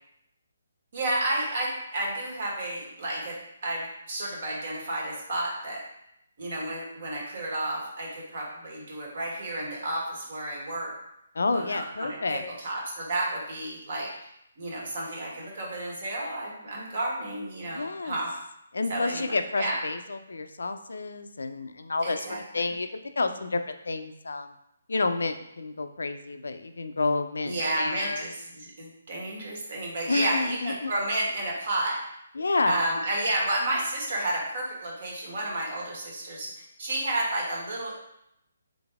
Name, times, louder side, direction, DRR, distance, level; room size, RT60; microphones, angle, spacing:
voice 1, 0.9-3.4 3.6-5.8 6.4-10.9 11.5-14.1 14.6-18.3 18.9-19.8 22.0-22.7 27.4-32.0 32.6-37.9, right 1 dB, 55° right, -3 dB, 1.5 m, -31 dB
voice 2, 11.3-12.4 17.7-18.2 18.7-23.6 23.9-24.5 24.9-28.2 30.1-30.9 32.3-32.8 33.2-33.3, left 3 dB, 85° left, 8 dB, 0.4 m, -30 dB
4.0 x 3.4 x 3.4 m, 0.81 s
hypercardioid pair, 160°, 0 cm